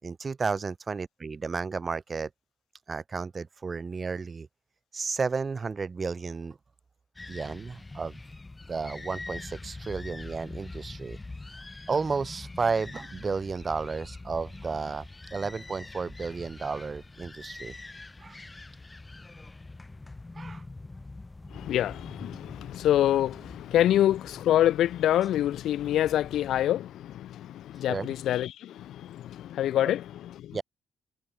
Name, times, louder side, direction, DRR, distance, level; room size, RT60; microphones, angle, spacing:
voice 1, 0.0-2.3 2.9-4.5 4.9-6.6 7.3-8.2 8.7-11.2 11.5-15.1 15.3-17.7 18.2-18.4 20.4-20.6 27.9-28.1 30.5-30.6, right 4 dB, 35° right, 3.9 m, -32 dB
sound 1, 7.2-26.7, left 2 dB, 20° left, 4.5 m, -44 dB
voice 2, 21.5-30.6, left 12 dB, 75° left, 0.4 m, -26 dB
cardioid pair, 90°, 0 cm